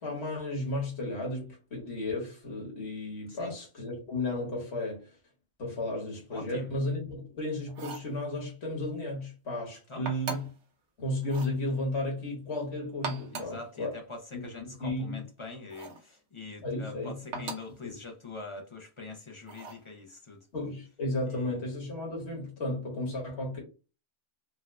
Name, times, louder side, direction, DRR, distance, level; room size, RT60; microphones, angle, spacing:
voice 1, 0.0-5.1 5.6-10.5 11.0-13.9 14.3-15.2 16.6-17.5 17.8-17.9 20.5-23.6, left 1 dB, 60° left, 1.7 m, -34 dB
voice 2, 6.3-6.7 9.9-10.1 13.3-20.5 21.2-21.6, left 3 dB, 40° left, 0.4 m, -44 dB
sound 1, 7.7-8.1 10.1-10.6 11.2-11.6 12.9-13.6 15.7-16.1 17.3-17.8 19.5-19.9, right 5 dB, 70° right, 1.1 m, -40 dB
4.3 x 2.3 x 2.3 m
omnidirectional pair, 1.3 m